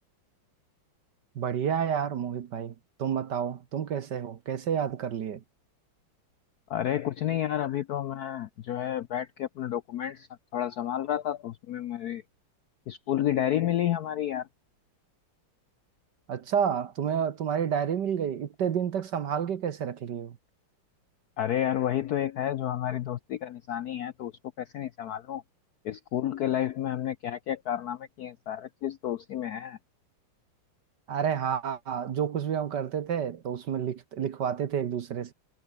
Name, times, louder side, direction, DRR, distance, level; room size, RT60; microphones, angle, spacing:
voice 1, 1.4-2.7 3.0-5.4 16.3-20.3 31.1-35.3, right 8 dB, 60° right, 1.6 m, -30 dB
voice 2, 6.7-12.2 12.9-14.5 21.4-24.3 24.6-25.4 25.8-29.8, left 11 dB, 70° left, 0.9 m, -30 dB
omnidirectional pair, 2.3 m